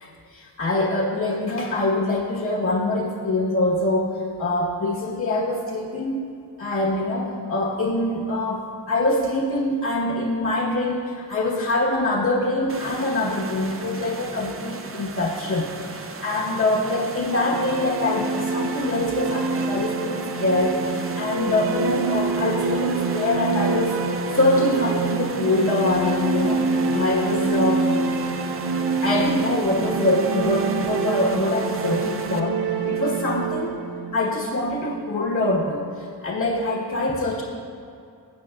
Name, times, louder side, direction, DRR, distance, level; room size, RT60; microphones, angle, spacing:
voice 1, 0.0-6.2 6.6-27.8 29.0-33.7 34.1-37.4, left 2 dB, 50° left, -4 dB, 1.3 m, -24 dB
sound 1, 12.7-32.4, right 4 dB, 35° right, 0.6 m, -37 dB
sound 2, 17.1-35.1, right 4 dB, 80° right, 0.7 m, -26 dB
16.5 x 8.4 x 2.4 m, 2.5 s
wide cardioid pair, 95°, 38 cm